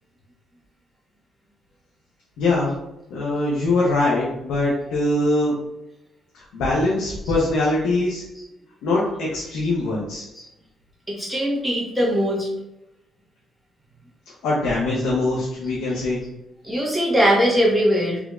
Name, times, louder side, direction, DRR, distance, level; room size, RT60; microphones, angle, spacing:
voice 1, 2.4-2.7 3.1-5.6 6.3-8.2 8.8-10.3 14.4-16.2, left 2 dB, 90° left, -5 dB, 0.8 m, -22 dB
voice 2, 11.1-12.5 15.9-16.0 16.6-18.2, equal, 5° right, -5 dB, 1.5 m, -21 dB
3.5 x 3.2 x 2.4 m, 0.90 s
cardioid pair, 90°, 0 cm